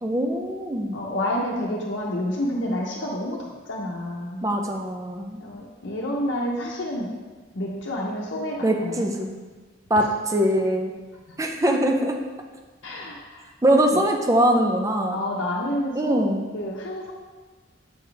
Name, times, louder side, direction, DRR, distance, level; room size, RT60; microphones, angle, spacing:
voice 1, 0.0-1.1 4.4-5.4 8.6-9.4 9.9-10.9 11.4-12.2 13.6-15.2 16.0-16.5, right 1 dB, 15° right, 2 dB, 0.5 m, -22 dB
voice 2, 0.9-4.4 5.4-7.1 7.5-9.0 11.3-11.4 12.8-13.4 13.9-14.0 15.1-16.2 16.5-17.1, left 1 dB, 80° left, -3 dB, 0.8 m, -29 dB
7.6 x 4.0 x 3.3 m, 1.3 s
head